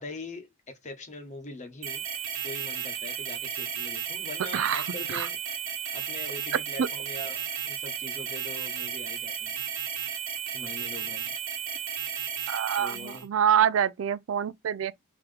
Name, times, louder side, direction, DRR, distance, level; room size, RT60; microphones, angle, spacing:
voice 1, 0.0-2.0 2.4-5.4 5.9-9.6 10.5-11.3 12.8-13.3, left 2 dB, 35° left, 1.1 m, -42 dB
sound 1, 1.8-13.2, right 8 dB, 90° right, 1.3 m, -34 dB
voice 2, 4.5-5.3 6.8-6.9 12.5-14.9, right 9 dB, 70° right, 0.3 m, -26 dB
3.8 x 2.9 x 3.3 m
head